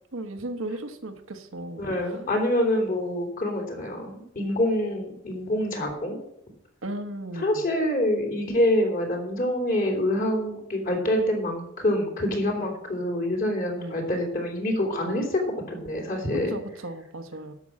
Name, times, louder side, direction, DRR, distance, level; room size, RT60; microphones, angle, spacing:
voice 1, 0.1-2.2 4.5-4.6 6.8-7.7 12.6-12.8 13.8-14.0 15.0-15.3 16.3-17.5, right 1 dB, 90° right, 8 dB, 1.2 m, -36 dB
voice 2, 1.8-6.2 7.4-15.4 15.7-16.5, left 1 dB, 45° left, 1 dB, 3.1 m, -26 dB
12.0 x 6.1 x 7.4 m, 0.80 s
head